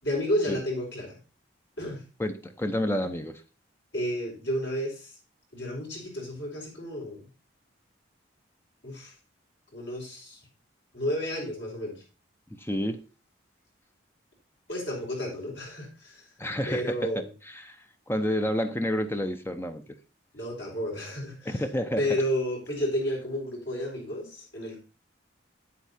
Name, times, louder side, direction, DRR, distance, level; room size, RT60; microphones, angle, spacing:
voice 1, 0.0-1.2 1.8-2.0 3.9-5.2 5.5-7.3 8.8-9.1 9.7-10.4 10.9-12.0 14.7-16.3 16.7-17.3 20.3-21.6 22.0-24.8, equal, 70° left, -2 dB, 5.4 m, -31 dB
voice 2, 2.2-3.4 12.5-13.0 16.4-17.0 17.5-20.0 21.5-22.2, equal, 10° left, 7 dB, 0.7 m, -30 dB
9.1 x 8.3 x 4.3 m, 0.33 s
head